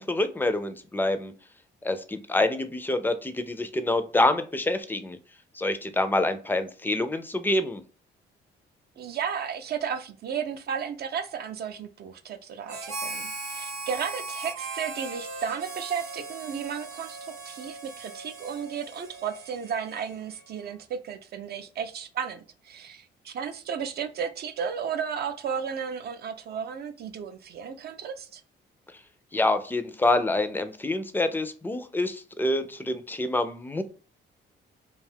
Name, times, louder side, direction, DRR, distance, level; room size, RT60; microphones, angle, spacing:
voice 1, 0.0-1.3 1.8-5.2 5.6-7.8 29.3-33.8, left 2 dB, 10° left, 10 dB, 0.4 m, -26 dB
voice 2, 9.0-28.4, right 7 dB, 55° right, 8 dB, 0.4 m, -34 dB
Harmonica, 12.7-20.4, right 3 dB, 90° right, 0.8 m, -38 dB
2.5 x 2.3 x 3.3 m, 0.37 s
cardioid pair, 90°, 20 cm